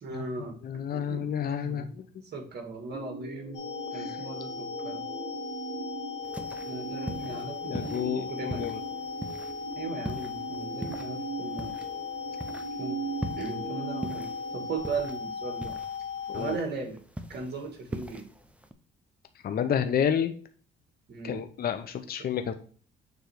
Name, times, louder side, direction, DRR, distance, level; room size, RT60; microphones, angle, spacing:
voice 1, 0.0-1.9 2.3-3.6 3.9-5.0 6.6-8.7 9.8-11.7 12.8-13.0 13.3-15.7 16.3-17.0 17.3-18.3 21.1-21.4 22.2-22.3, right 4 dB, 55° right, 3 dB, 2.0 m, -37 dB
voice 2, 0.6-2.0 4.0-4.1 7.3-7.4 7.7-8.8 16.3-16.6 19.4-20.3 21.2-22.5, left 8 dB, 50° left, 8 dB, 0.6 m, -30 dB
sound 1, 2.9-14.8, right 4 dB, 75° right, 1.9 m, -40 dB
sound 2, 3.5-16.6, left 6 dB, 70° left, 2.2 m, -37 dB
sound 3, 6.2-18.7, right 1 dB, 5° right, 0.7 m, -42 dB
6.9 x 3.2 x 4.5 m, 0.42 s
cardioid pair, 90°, 20 cm